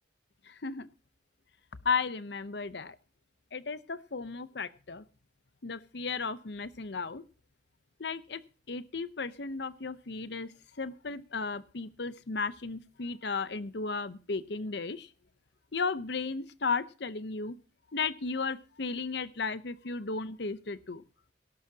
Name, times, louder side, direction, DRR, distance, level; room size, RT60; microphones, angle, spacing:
voice 1, 0.4-0.9 1.8-3.0 3.5-5.0 5.6-7.2 8.0-8.4 8.7-10.5 10.8-15.1 15.7-17.6 17.9-21.0, left 4 dB, 60° left, 15 dB, 0.8 m, -34 dB
17.5 x 12.0 x 2.8 m, 0.36 s
head